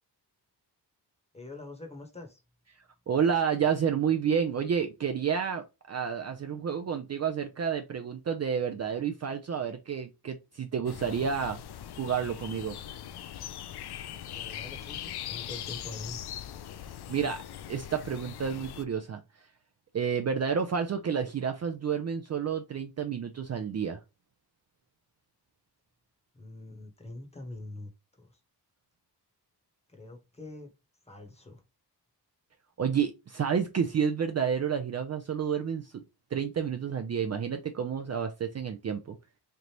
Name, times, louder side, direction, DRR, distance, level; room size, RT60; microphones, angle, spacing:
voice 1, 1.3-2.4 14.3-16.2 26.4-27.9 28.2-28.3 29.9-30.7 31.1-31.6, left 2 dB, 15° left, 1.0 m, -44 dB
voice 2, 3.1-11.6 12.0-12.8 17.1-17.4 17.7-19.2 19.9-24.0 32.8-36.0 36.3-39.2, right 7 dB, 40° right, 0.4 m, -30 dB
sound 1, 10.9-18.9, left 10 dB, 70° left, 0.5 m, -41 dB
3.8 x 3.3 x 2.9 m
wide cardioid pair, 175°, 41 cm